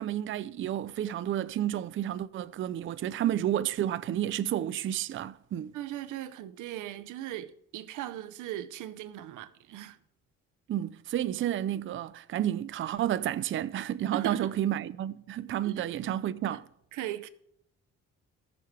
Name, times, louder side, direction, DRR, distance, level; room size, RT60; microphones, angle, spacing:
voice 1, 0.0-5.7 10.7-16.6, right 11 dB, 45° right, 0.4 m, -31 dB
voice 2, 5.7-10.0 14.1-14.5 15.6-15.9 16.5-16.6 16.9-17.3, right 12 dB, 85° right, 0.6 m, -38 dB
14.0 x 6.8 x 4.6 m
cardioid pair, 90°, 30 cm